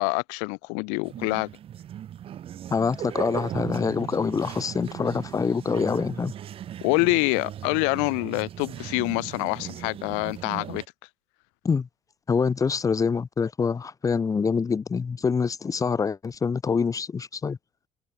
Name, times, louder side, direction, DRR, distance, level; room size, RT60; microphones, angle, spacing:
voice 1, 0.0-1.5 6.8-10.8, left 40 dB or more, 80° left, 0.8 m, -26 dB
sound 1, 1.0-10.9, right 10 dB, 50° right, 1.3 m, -38 dB
voice 2, 2.7-6.3 11.6-11.9 12.3-17.6, left 5 dB, 30° left, 1.3 m, -25 dB
supercardioid pair, 85°, 12 cm